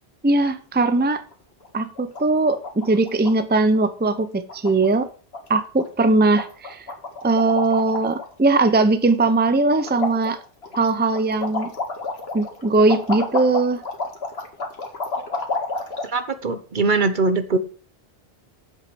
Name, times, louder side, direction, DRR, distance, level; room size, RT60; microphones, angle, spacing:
voice 1, 0.2-1.2 1.7-5.1 5.5-6.9 7.2-10.4 10.8-11.7 12.3-13.8, right 3 dB, 10° right, 11 dB, 0.7 m, -20 dB
sound 1, 0.9-1.3 1.6-1.7 1.9-2.2 2.5-3.3 3.6-3.8 4.1-4.2 4.5-5.0 5.3-5.5 5.8-6.1 6.4-8.3 8.7-9.5 9.8-16.1, left 3 dB, 80° left, 2.1 m, -30 dB
voice 2, 16.0-17.6, right 3 dB, 50° right, 10 dB, 1.1 m, -21 dB
8.1 x 6.4 x 6.9 m, 0.40 s
omnidirectional pair, 1.0 m